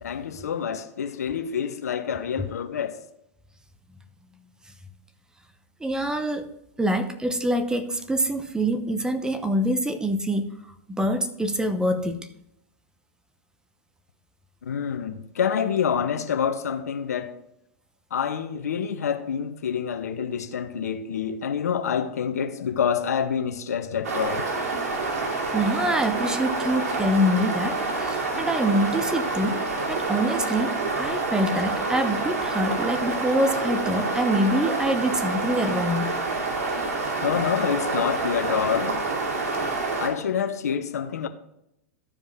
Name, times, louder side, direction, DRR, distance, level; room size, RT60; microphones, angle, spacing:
voice 1, 0.0-2.9 14.6-17.4 18.1-24.5 37.2-39.0 40.0-41.3, left 7 dB, 80° left, 0.8 m, -27 dB
voice 2, 5.8-6.5 6.8-10.6 10.9-12.3 25.5-29.6 29.9-36.1, equal, 10° right, 0.9 m, -25 dB
sound 1, 24.0-40.1, right 3 dB, 75° right, 2.9 m, -27 dB
13.5 x 5.1 x 3.6 m
hypercardioid pair, 110°, 8 cm